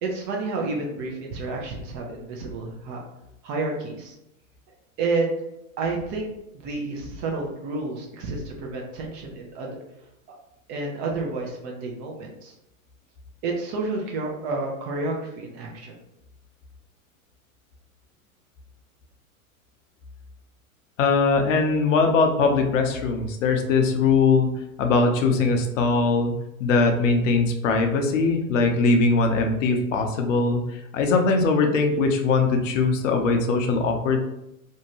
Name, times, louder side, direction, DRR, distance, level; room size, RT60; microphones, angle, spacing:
voice 1, 0.0-3.0 3.4-4.1 5.0-5.3 5.8-6.3 6.5-9.8 10.7-12.5 13.4-15.9, right 3 dB, 30° right, -1 dB, 0.4 m, -30 dB
voice 2, 21.0-24.5 24.8-26.3 26.6-34.2, left 4 dB, 60° left, 4 dB, 0.6 m, -21 dB
2.6 x 2.2 x 2.9 m, 0.87 s
hypercardioid pair, 100°, 43 cm